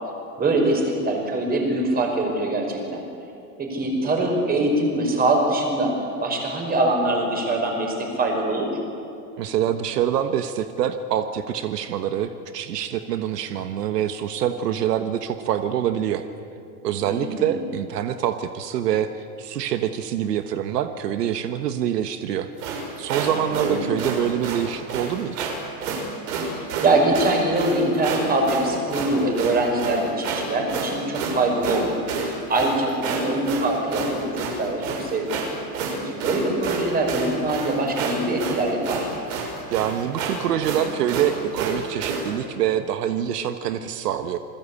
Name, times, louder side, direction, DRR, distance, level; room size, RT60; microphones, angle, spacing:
voice 1, 0.4-3.0 3.6-5.9 6.2-8.7 17.0-17.5 23.4-23.9 26.4-31.9 32.2-35.3 36.1-39.1, right 2 dB, 20° right, 2 dB, 5.3 m, -23 dB
voice 2, 9.4-16.2 16.8-22.5 23.0-25.5 39.7-44.4, right 10 dB, 80° right, 9 dB, 1.4 m, -25 dB
sound 1, 22.6-42.3, right 4 dB, 60° right, 6.5 m, -29 dB
28.0 x 21.0 x 8.5 m, 2.6 s
supercardioid pair, 145°, 47 cm